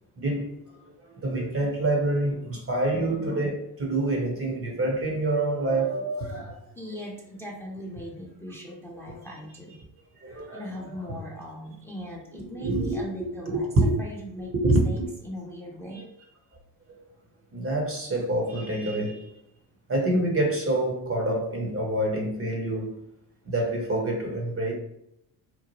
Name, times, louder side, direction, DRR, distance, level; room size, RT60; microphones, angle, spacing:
voice 1, 0.2-0.5 0.8-6.6 9.1-9.2 10.2-10.7 12.6-13.9 14.4-15.1 15.9-16.1 17.5-19.3 19.9-23.0 23.5-24.7, right 1 dB, 25° right, 0.8 m, -27 dB
voice 2, 6.8-9.8 10.5-13.7 14.0-14.5 14.9-16.0, equal, 5° left, 0.7 m, -39 dB
2.9 x 2.1 x 2.9 m
hypercardioid pair, 65°, 50 cm